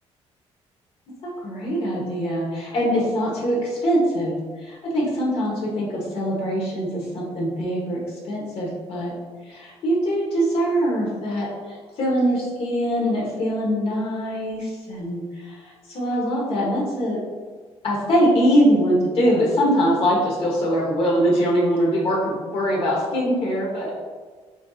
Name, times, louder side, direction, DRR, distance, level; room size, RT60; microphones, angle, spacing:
voice 1, 1.4-9.1 9.4-17.2 17.8-23.9, equal, 55° left, -4 dB, 1.1 m, -23 dB
6.7 x 2.7 x 2.4 m, 1.5 s
cardioid pair, 155°, 11 cm